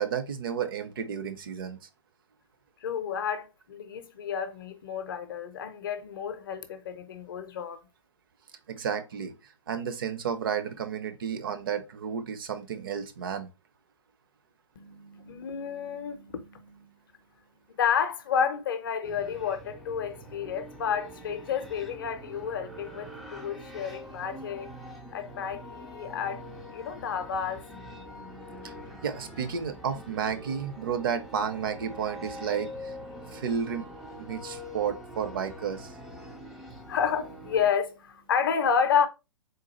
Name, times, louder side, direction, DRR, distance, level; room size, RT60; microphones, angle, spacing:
voice 1, 0.0-1.8 8.7-9.3 9.7-13.5 28.6-28.7 29.0-33.0 33.3-33.9 34.2-36.0, right 7 dB, 45° right, 0.7 m, -32 dB
voice 2, 2.8-7.8 14.8-17.0 17.8-24.8 25.1-26.4 26.7-27.6 36.7-39.1, left 7 dB, 40° left, 0.6 m, -30 dB
sound 1, 19.0-37.7, equal, ahead, 0.4 m, -44 dB
3.8 x 2.4 x 4.1 m
figure-of-eight pair, 130°, 17 cm